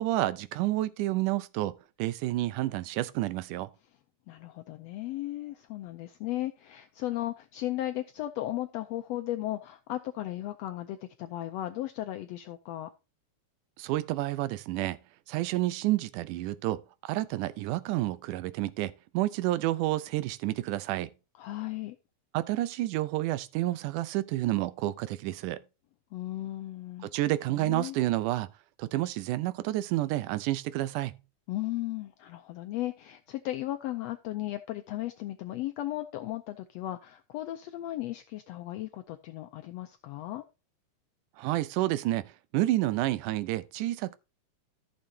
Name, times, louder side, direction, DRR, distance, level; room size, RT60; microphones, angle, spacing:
voice 1, 0.0-3.7 13.8-15.0 15.3-21.1 22.3-25.6 27.0-28.5 28.8-31.2 41.4-42.2 42.5-44.2, right 16 dB, 90° right, 2.2 m, -29 dB
voice 2, 4.3-12.9 21.4-22.0 26.1-27.1 27.5-28.0 31.5-40.4, left 15 dB, 80° left, 1.5 m, -36 dB
14.0 x 6.7 x 2.8 m
omnidirectional pair, 3.5 m